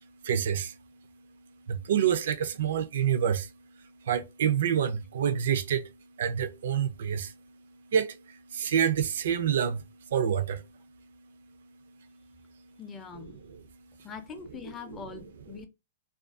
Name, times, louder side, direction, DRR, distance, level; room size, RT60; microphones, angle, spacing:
voice 1, 0.2-0.8 1.7-3.5 4.0-5.9 6.2-7.4 7.9-10.7, right 8 dB, 70° right, 0.4 m, -27 dB
voice 2, 12.8-13.4 14.0-15.7, left 6 dB, 15° left, 0.4 m, -42 dB
2.4 x 2.2 x 2.4 m
hypercardioid pair, 160°, 0 cm